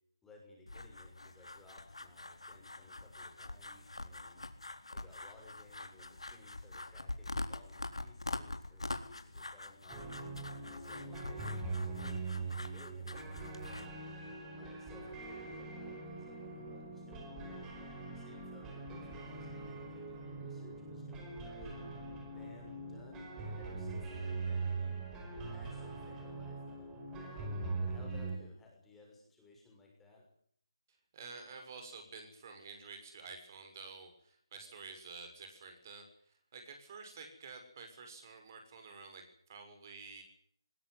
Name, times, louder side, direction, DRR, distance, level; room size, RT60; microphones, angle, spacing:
voice 1, 0.2-4.5 4.9-10.1 10.6-14.0 14.5-17.7 18.1-21.8 22.3-24.9 25.4-30.3, left 3 dB, 5° left, -1 dB, 6.2 m, -59 dB
sound 1, 0.7-13.9, left 2 dB, 90° left, 3.8 m, -45 dB
sound 2, 9.9-28.4, right 3 dB, 10° right, 4.6 m, -42 dB
voice 2, 31.1-40.2, right 4 dB, 35° right, 5 dB, 6.5 m, -50 dB
20.5 x 20.0 x 9.8 m, 0.64 s
figure-of-eight pair, 160°, 3 cm